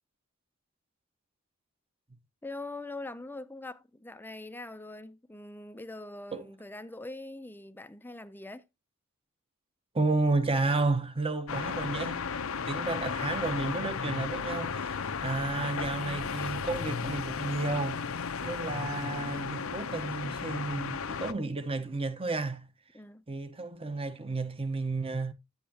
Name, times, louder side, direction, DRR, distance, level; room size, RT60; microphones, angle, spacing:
voice 1, 2.4-8.7 22.9-23.2, left 2 dB, 10° left, 0.6 m, -43 dB
voice 2, 9.9-12.2 12.7-18.1 18.4-22.7 23.3-25.3, right 3 dB, 25° right, 0.9 m, -32 dB
sound 1, 11.5-21.3, left 5 dB, 70° left, 0.7 m, -34 dB
9.6 x 8.4 x 2.8 m
head